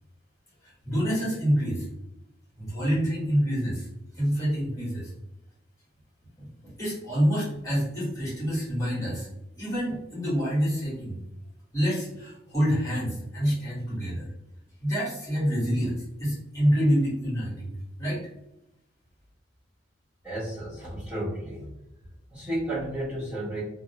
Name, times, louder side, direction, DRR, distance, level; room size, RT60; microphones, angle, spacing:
voice 1, 0.6-1.9 2.6-3.9 4.1-5.1 6.4-9.3 9.5-11.2 11.7-14.3 14.8-18.2, equal, 20° left, -8 dB, 1.3 m, -27 dB
voice 2, 20.2-21.7 22.3-23.6, right 1 dB, 10° right, -11 dB, 0.9 m, -32 dB
2.6 x 2.1 x 2.7 m, 0.87 s
head